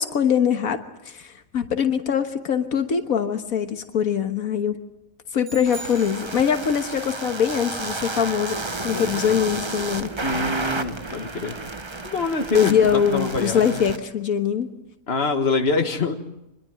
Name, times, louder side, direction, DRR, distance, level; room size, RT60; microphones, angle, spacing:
voice 1, 0.0-4.8 5.3-10.1 12.5-14.7, left 8 dB, 85° left, 7 dB, 1.7 m, -23 dB
sound 1, 5.4-6.9, right 2 dB, 70° right, 6.3 m, -41 dB
sound 2, 5.7-14.0, right 3 dB, 25° right, 0.9 m, -32 dB
voice 2, 8.9-9.3 10.2-11.6 12.0-13.8 15.1-16.2, left 4 dB, 50° left, 6 dB, 1.9 m, -25 dB
25.5 x 22.0 x 9.1 m, 0.89 s
omnidirectional pair, 1.4 m